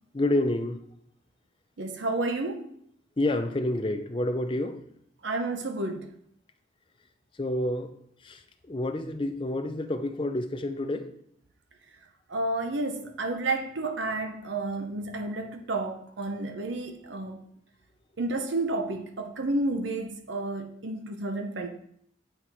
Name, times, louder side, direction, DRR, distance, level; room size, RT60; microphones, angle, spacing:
voice 1, 0.1-0.8 3.2-4.8 7.4-7.9 8.2-11.1, left 1 dB, 25° left, 0.5 m, -28 dB
voice 2, 1.8-2.7 5.2-6.1 12.3-17.4 18.2-21.7, right 2 dB, 70° right, 0.8 m, -31 dB
8.9 x 4.3 x 4.5 m
head